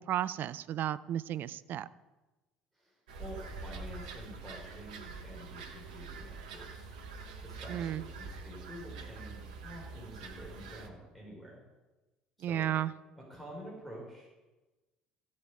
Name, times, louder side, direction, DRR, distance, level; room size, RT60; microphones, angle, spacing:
voice 1, 0.0-1.9 7.7-8.0 12.4-12.9, right 11 dB, 50° right, 17 dB, 0.4 m, -33 dB
voice 2, 2.7-6.9 7.4-11.6 12.4-12.6 13.2-14.3, equal, ahead, -4 dB, 4.5 m, -48 dB
sound 1, 3.1-10.9, right 4 dB, 70° right, 1.1 m, -45 dB
15.0 x 7.5 x 4.8 m, 1.1 s
figure-of-eight pair, 55°, 4 cm